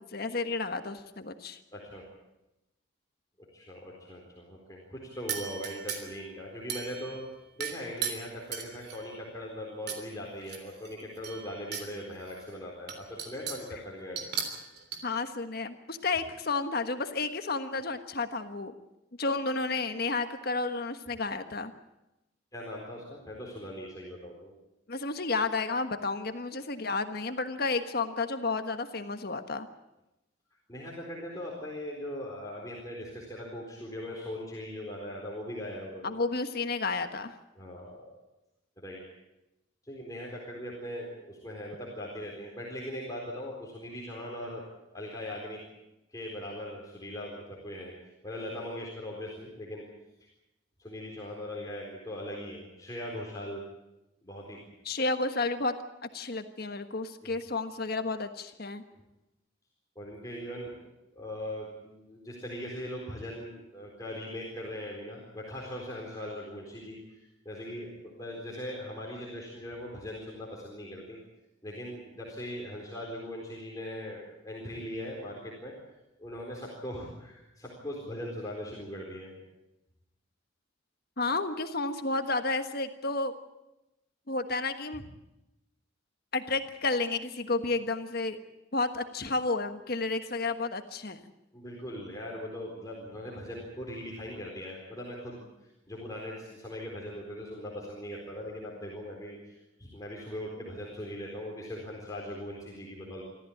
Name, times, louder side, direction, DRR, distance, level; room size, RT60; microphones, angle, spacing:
voice 1, 0.0-1.6 15.0-18.7 19.2-21.7 24.9-29.7 36.0-37.3 54.8-55.7 56.1-58.8 81.2-83.3 84.3-85.0 86.3-88.4 88.7-91.2, left 3 dB, 50° left, 8 dB, 1.4 m, -31 dB
voice 2, 1.7-2.1 3.5-7.2 7.6-14.3 22.5-24.5 30.7-36.1 37.6-38.0 38.8-39.0 39.8-45.6 46.1-49.9 50.2-50.3 50.8-53.6 54.2-54.6 57.2-57.3 58.9-59.0 60.0-60.7 61.2-71.2 71.6-75.7 76.2-79.4 84.9-85.0 91.5-103.2, left 1 dB, 20° left, -3 dB, 4.1 m, -40 dB
sound 1, 5.3-6.2 6.7-7.2 7.6-9.1 9.9-10.0 10.4-11.9 12.3-12.4 12.9-13.7 14.2-15.0, right 7 dB, 55° right, 3.4 m, -37 dB
25.0 x 14.5 x 8.6 m, 0.93 s
head